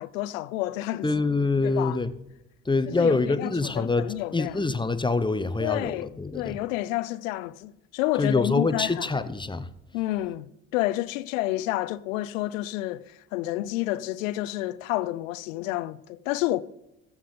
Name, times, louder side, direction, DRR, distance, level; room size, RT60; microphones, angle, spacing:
voice 1, 0.0-1.1 1.6-2.0 2.9-3.5 3.8-4.5 5.6-9.1 9.9-10.5 10.7-16.6, left 16 dB, 80° left, 0.6 m, -29 dB
voice 2, 1.0-2.1 2.6-6.6 8.2-9.7, left 3 dB, 10° left, 0.8 m, -25 dB
14.5 x 7.3 x 3.9 m
hypercardioid pair, 55°, 39 cm